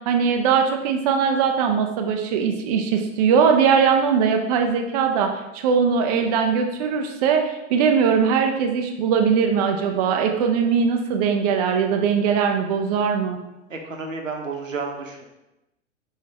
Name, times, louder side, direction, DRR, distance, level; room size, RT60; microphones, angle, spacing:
voice 1, 0.1-13.4, right 6 dB, 35° right, 4 dB, 0.4 m, -20 dB
voice 2, 13.7-15.3, right 4 dB, 80° right, 3 dB, 0.8 m, -31 dB
4.4 x 3.2 x 3.2 m, 0.95 s
figure-of-eight pair, 95°, 38 cm